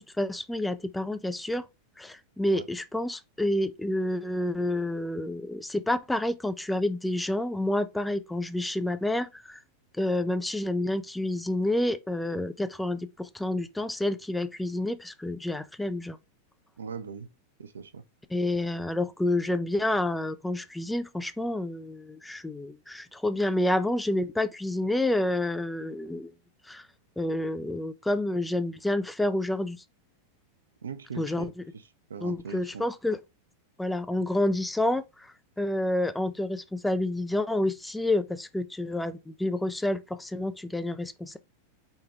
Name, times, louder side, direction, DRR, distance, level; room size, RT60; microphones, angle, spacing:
voice 1, 0.0-1.7 2.0-9.6 10.0-16.2 18.3-26.3 26.7-26.9 27.2-29.8 31.2-31.5 32.2-33.2 33.8-41.4, left 1 dB, 5° left, 0.3 m, -29 dB
voice 2, 16.8-17.3 17.6-18.0 30.8-31.5 32.1-32.8, right 6 dB, 70° right, 0.4 m, -40 dB
4.4 x 2.2 x 3.2 m
figure-of-eight pair, 90°, 0 cm